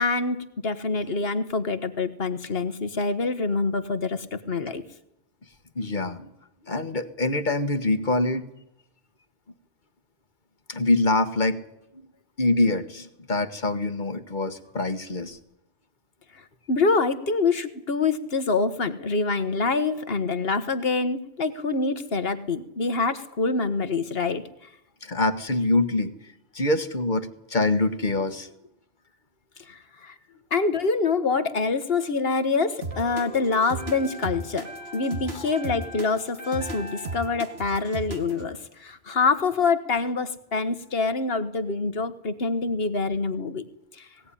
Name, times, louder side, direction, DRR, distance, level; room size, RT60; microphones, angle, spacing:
voice 1, 0.0-4.8 16.3-24.5 29.7-30.1 30.5-43.6 43.9-44.1, left 4 dB, 60° left, 12 dB, 1.5 m, -26 dB
voice 2, 5.7-6.3 6.7-8.5 10.7-11.6 12.4-15.4 25.0-26.1 26.5-28.5 35.3-35.5, left 2 dB, 45° left, 11 dB, 1.5 m, -25 dB
sound 1, 32.5-38.5, right 1 dB, 90° right, 5.4 m, -42 dB
sound 2, 32.8-38.5, right 2 dB, 65° right, 1.9 m, -35 dB
20.0 x 16.5 x 10.0 m, 0.82 s
omnidirectional pair, 1.1 m